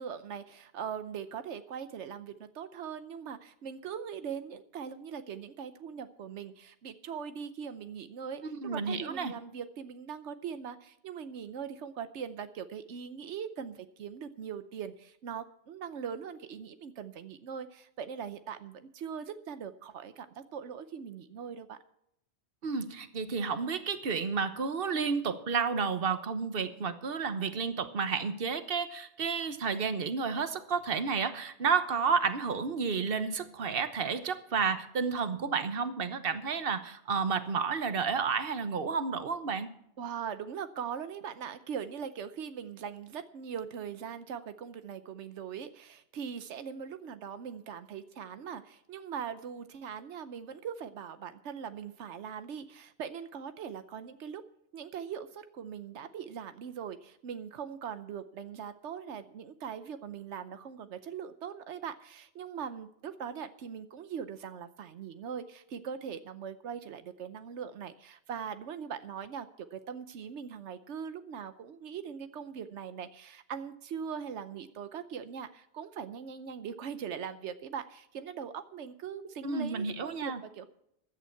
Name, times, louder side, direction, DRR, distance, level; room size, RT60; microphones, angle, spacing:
voice 1, 0.0-21.8 40.0-54.4 54.7-80.7, right 7 dB, 90° right, 11 dB, 1.1 m, -41 dB
voice 2, 8.4-9.3 22.6-39.7 79.4-80.4, right 5 dB, 55° right, 10 dB, 1.3 m, -31 dB
15.5 x 11.0 x 4.5 m, 0.77 s
omnidirectional pair, 1.1 m